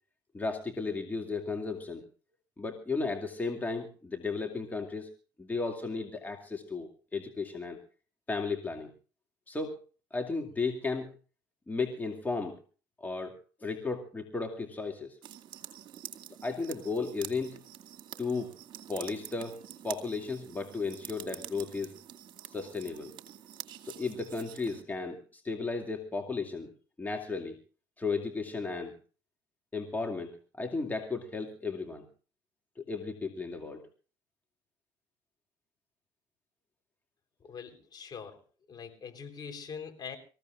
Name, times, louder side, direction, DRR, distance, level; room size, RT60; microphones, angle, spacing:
voice 1, 0.3-2.1 2.6-5.1 5.4-7.8 8.3-8.9 9.5-9.8 10.1-11.1 11.7-12.6 13.0-15.2 16.4-17.6 18.2-18.5 18.9-19.6 19.8-21.9 22.5-23.1 23.8-26.7 27.0-27.6 28.0-29.0 29.7-32.1 32.8-33.8, left 4 dB, 15° left, 2 dB, 2.4 m, -34 dB
sound 1, 15.2-24.8, right 10 dB, 45° right, 2.3 m, -47 dB
voice 2, 37.4-38.4 38.7-40.2, left 6 dB, 40° left, 4 dB, 3.8 m, -43 dB
26.0 x 15.5 x 2.5 m, 0.37 s
hypercardioid pair, 65°, 11 cm